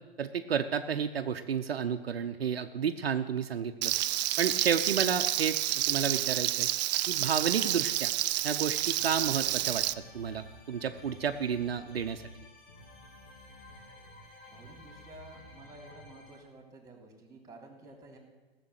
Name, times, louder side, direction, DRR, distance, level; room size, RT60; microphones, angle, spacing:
voice 1, 0.2-3.9 4.4-6.7 7.1-8.1 8.4-9.8 10.1-12.2, right 7 dB, 75° right, 7 dB, 0.8 m, -31 dB
Frying (food), 3.8-9.9, right 14 dB, 45° right, 0.5 m, -29 dB
sound 1, 9.0-16.4, left 1 dB, 65° left, 4.0 m, -52 dB
voice 2, 14.5-18.2, right 2 dB, 10° right, 2 dB, 3.2 m, -52 dB
16.0 x 6.9 x 8.1 m, 1.2 s
figure-of-eight pair, 110°, 30 cm